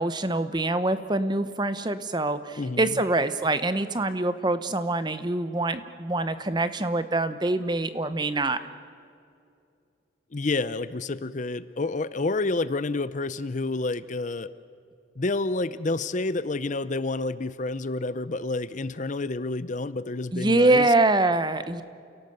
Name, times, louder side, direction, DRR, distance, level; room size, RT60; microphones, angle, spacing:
voice 1, 0.0-8.6 20.3-21.8, right 2 dB, 20° right, 12 dB, 0.9 m, -24 dB
voice 2, 2.6-3.0 10.3-14.5 15.2-20.9, left 3 dB, 40° left, 15 dB, 0.6 m, -29 dB
29.0 x 17.5 x 7.9 m, 2.4 s
head